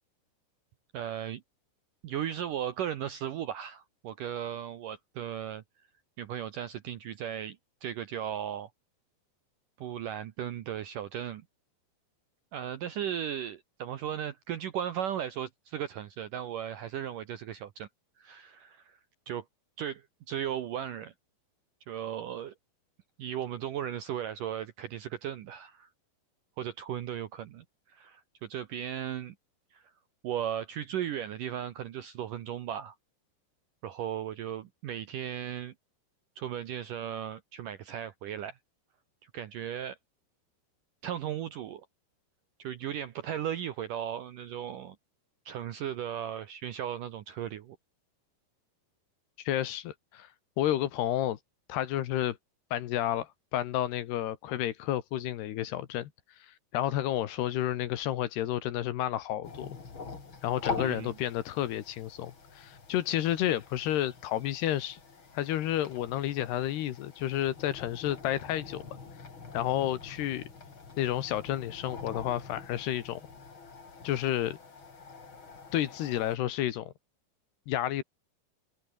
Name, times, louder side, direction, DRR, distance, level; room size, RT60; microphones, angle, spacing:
voice 1, 0.9-1.4 2.0-5.6 6.2-8.7 9.8-11.4 12.5-17.9 18.2-19.0 19.3-19.5 19.8-21.1 21.9-22.5 23.2-25.9 26.6-29.4 29.7-29.9 30.2-33.0 33.8-35.7 36.4-38.6 39.2-40.0 41.0-41.9 42.6-45.0 45.5-47.8 60.8-61.2, right 10 dB, 70° right, 2.1 m, -36 dB
voice 2, 49.4-50.3 50.6-51.4 51.7-52.4 52.7-56.1 56.5-59.8 60.4-65.0 65.3-68.8 69.5-70.5 71.0-73.2 74.0-74.6 75.7-76.9 77.7-78.0, left 12 dB, 70° left, 3.3 m, -31 dB
sound 1, 59.4-76.4, left 4 dB, 30° left, 3.7 m, -44 dB
omnidirectional pair, 5.1 m